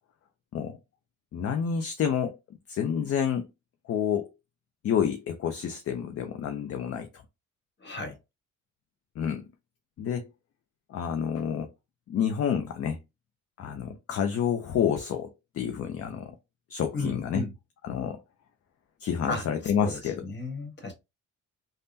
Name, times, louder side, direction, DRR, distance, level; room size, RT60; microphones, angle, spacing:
voice 1, 1.3-2.4 2.7-3.5 3.8-4.3 4.8-7.1 9.2-9.5 10.0-10.3 10.9-11.7 12.1-13.0 13.6-16.3 16.7-17.4 17.8-18.2 19.0-20.2, left 8 dB, 50° left, 0.5 m, -29 dB
voice 2, 7.8-8.2 16.9-17.5 19.3-20.9, left 3 dB, 35° left, 1.3 m, -34 dB
3.4 x 2.2 x 2.7 m
cardioid pair, 90°, 30 cm